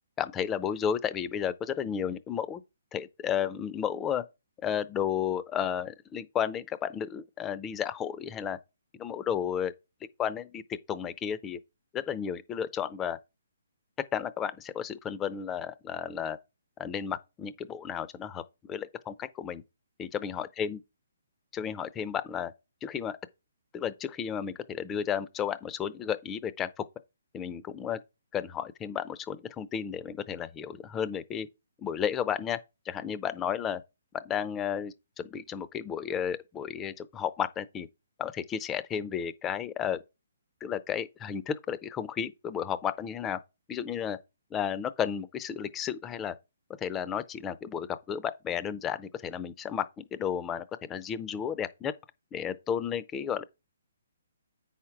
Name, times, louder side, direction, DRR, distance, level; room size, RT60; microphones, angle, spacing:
voice 1, 0.2-2.6 2.9-4.2 4.6-8.6 9.0-9.7 10.2-10.6 10.9-11.6 11.9-13.2 14.1-16.4 16.8-18.4 18.7-19.6 20.0-20.8 21.5-22.5 22.8-23.2 23.7-26.8 27.3-28.0 28.3-31.5 31.8-32.6 32.9-33.8 34.1-37.9 38.2-40.0 40.6-43.4 43.7-44.2 44.5-46.3 46.8-51.9 52.3-53.4, left 8 dB, 10° left, 0.6 m, -33 dB
8.4 x 5.8 x 4.8 m
hypercardioid pair, 165°, 0 cm